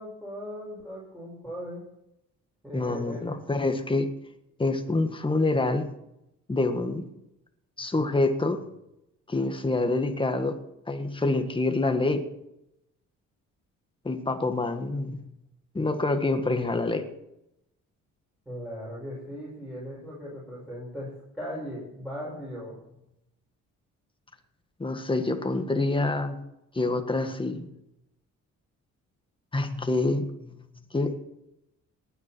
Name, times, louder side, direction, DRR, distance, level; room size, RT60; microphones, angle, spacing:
voice 1, 0.0-1.8 2.6-3.3 18.5-22.8, equal, ahead, -6 dB, 6.1 m, -38 dB
voice 2, 2.7-4.1 4.6-5.9 6.5-7.0 7.8-8.7 9.3-10.6 10.9-12.3 14.0-15.3 15.7-17.1 24.8-26.4 26.7-27.7 29.5-30.6 30.9-31.2, left 2 dB, 15° left, 6 dB, 1.7 m, -26 dB
19.0 x 9.9 x 4.5 m, 0.86 s
cardioid pair, 90°, 30 cm